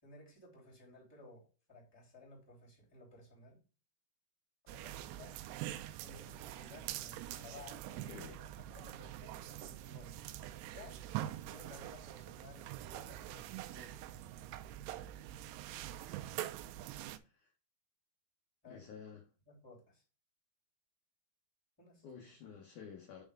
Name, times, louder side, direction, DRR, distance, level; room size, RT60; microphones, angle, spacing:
voice 1, 0.0-3.6 4.6-5.4 6.0-10.2 10.7-11.0 11.4-14.5 18.6-18.9 19.5-20.0 21.8-22.3, left 2 dB, 5° left, 2.6 m, -57 dB
sound 1, 4.7-17.2, right 13 dB, 80° right, 2.6 m, -45 dB
voice 2, 18.7-19.2 22.0-23.2, left 7 dB, 75° left, 1.8 m, -51 dB
6.3 x 4.5 x 3.5 m
omnidirectional pair, 4.9 m